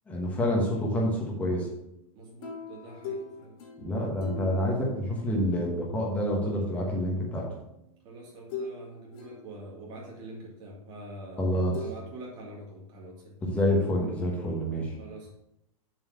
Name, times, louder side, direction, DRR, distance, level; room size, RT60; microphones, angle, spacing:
voice 1, 0.1-1.7 3.8-7.5 11.4-11.8 13.4-15.0, equal, 5° left, -2 dB, 1.2 m, -27 dB
voice 2, 2.1-3.5 8.0-13.3 15.0-15.3, right 2 dB, 25° right, -4 dB, 2.7 m, -45 dB
sound 1, 2.4-6.0 7.4-7.5 8.5-8.8 9.1-10.0 11.7-11.9, left 4 dB, 40° left, 1.8 m, -41 dB
7.4 x 4.4 x 6.6 m, 0.80 s
supercardioid pair, 175°, 19 cm